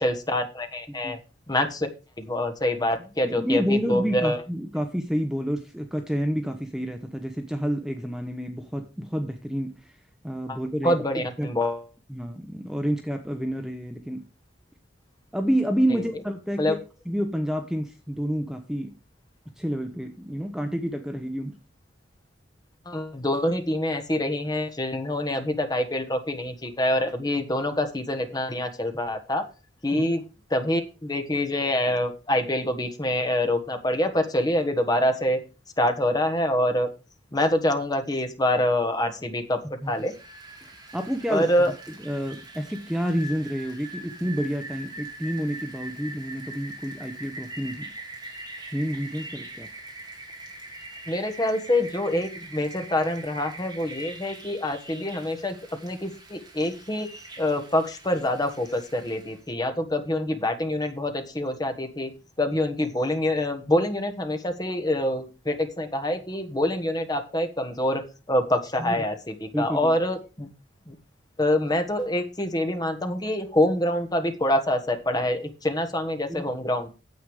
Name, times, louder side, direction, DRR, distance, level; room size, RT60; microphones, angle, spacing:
voice 1, 0.0-1.2 1.5-1.9 2.2-4.4 10.5-10.6 10.8-11.8 15.9-16.0 16.6-16.7 22.8-29.4 29.8-30.2 30.5-35.4 35.8-36.9 37.3-40.1 41.3-41.7 51.1-55.6 55.8-57.1 57.4-62.1 62.4-68.0 68.3-70.5 70.9-71.0 71.4-76.9, left 1 dB, 20° left, 7 dB, 1.4 m, -26 dB
voice 2, 3.2-10.0 10.2-11.0 11.4-11.5 12.1-14.2 15.3-16.8 17.1-18.9 19.6-21.6 29.9-30.0 39.8-39.9 40.6-41.5 41.9-47.9 48.7-49.7 68.8-69.0 69.5-69.9 76.3-76.5, equal, 5° right, 6 dB, 0.8 m, -29 dB
Rain, 39.9-59.4, right 2 dB, 20° right, 3.0 m, -42 dB
9.6 x 8.0 x 4.9 m, 0.31 s
head